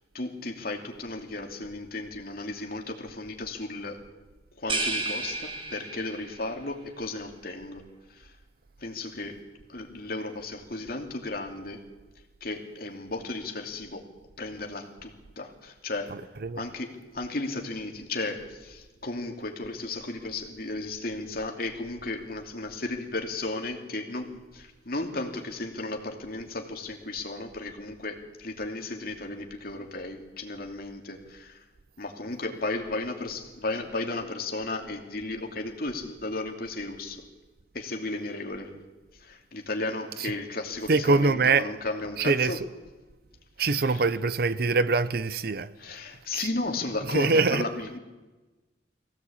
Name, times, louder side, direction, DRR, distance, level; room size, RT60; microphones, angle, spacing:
voice 1, 0.1-4.0 4.6-7.8 8.1-8.4 8.8-11.8 12.4-14.0 14.4-16.2 16.6-31.6 32.0-37.2 37.7-38.8 39.1-42.6 43.6-44.0 45.8-48.0, left 2 dB, 55° left, 2.7 m, -34 dB
sound 1, 4.7-6.4, right 2 dB, 30° right, 2.3 m, -31 dB
voice 2, 16.1-16.7 40.2-40.3 40.9-41.7 42.2-42.7 43.6-46.0 46.3-46.5 47.0-47.7, right 4 dB, 55° right, 0.7 m, -24 dB
22.5 x 16.5 x 8.7 m
head